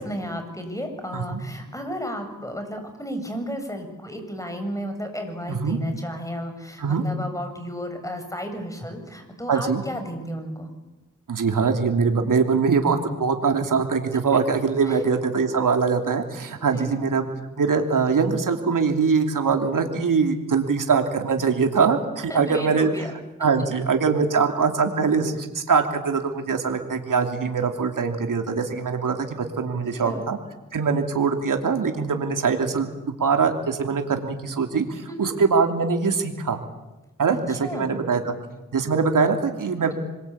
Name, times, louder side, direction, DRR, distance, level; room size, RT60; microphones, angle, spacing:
voice 1, 0.0-10.7 14.9-15.0 16.6-17.0 22.3-23.1 29.7-30.3 35.1-35.3 37.3-38.0, equal, 10° left, 5 dB, 7.8 m, -33 dB
voice 2, 5.5-5.8 6.8-7.1 9.5-9.8 11.3-17.2 17.6-23.1 23.4-30.4 30.7-32.9 33.2-36.6 37.2-38.3 38.7-39.9, right 5 dB, 80° right, 5 dB, 3.0 m, -22 dB
26.0 x 23.5 x 8.7 m, 1.0 s
cardioid pair, 55°, 32 cm